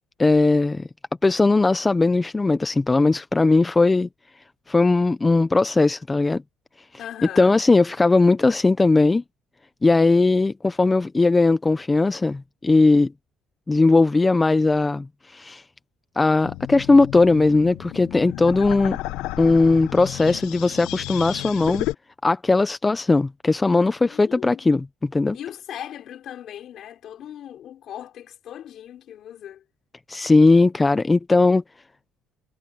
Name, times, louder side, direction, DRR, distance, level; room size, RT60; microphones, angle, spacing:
voice 1, 0.2-0.9 1.2-4.1 4.7-6.4 7.4-9.2 9.8-13.1 13.7-15.6 16.2-19.0 19.4-21.9 22.2-25.4 30.1-31.6, left 3 dB, 10° left, 0.4 m, -18 dB
voice 2, 7.0-7.5 24.0-24.7 25.3-29.6, left 10 dB, 45° left, 5.3 m, -38 dB
sound 1, 16.4-21.9, left 17 dB, 80° left, 0.9 m, -32 dB
cardioid pair, 165°, 0 cm